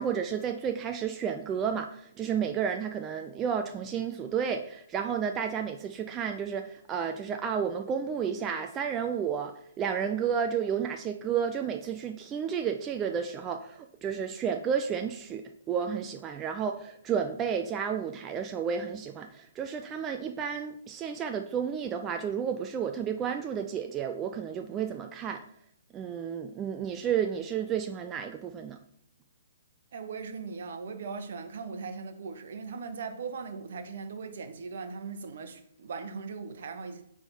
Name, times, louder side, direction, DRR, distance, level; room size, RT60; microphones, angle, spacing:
voice 1, 0.0-25.4 25.9-28.8, right 7 dB, 20° right, 0.4 m, -31 dB
voice 2, 29.9-37.0, right 5 dB, 55° right, 1.0 m, -39 dB
8.7 x 3.6 x 4.3 m
figure-of-eight pair, 125°, 0 cm